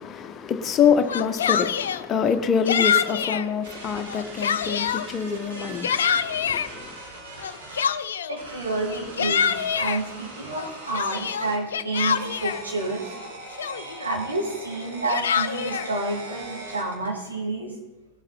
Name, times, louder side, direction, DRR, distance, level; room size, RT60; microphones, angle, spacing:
voice 1, 0.0-7.0, left 7 dB, 25° left, 1.1 m, -25 dB
Yell, 1.0-2.0 2.7-3.5 4.0-5.1 5.5-6.7 7.4-8.4 8.9-10.0 10.5-12.6 13.2-13.3 13.6-14.1 14.8-15.9, left 8 dB, 65° left, 0.5 m, -25 dB
sound 1, 3.6-7.9 8.4-11.6 11.9-17.1, right 2 dB, 60° right, 3.1 m, -40 dB
voice 2, 8.3-13.2 13.6-17.7, right 2 dB, 80° right, 3.6 m, -30 dB
19.0 x 8.0 x 4.3 m
figure-of-eight pair, 90°, 0 cm